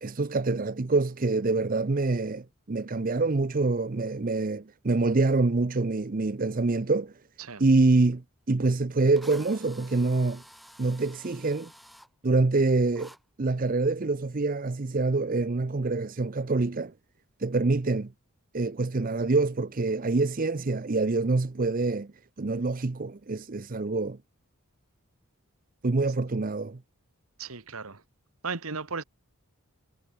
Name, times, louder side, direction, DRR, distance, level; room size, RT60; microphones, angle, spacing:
voice 1, 0.0-7.1 7.6-10.4 10.8-11.7 12.2-13.1 13.4-16.9 17.4-18.1 18.5-22.1 22.4-24.2 25.8-26.8, right 3 dB, 40° right, 0.6 m, -26 dB
Drill, 8.5-8.6 9.2-12.1 13.0-13.2, equal, ahead, 3.0 m, -51 dB
voice 2, 27.4-28.0 28.4-29.0, right 4 dB, 70° right, 1.6 m, -35 dB
head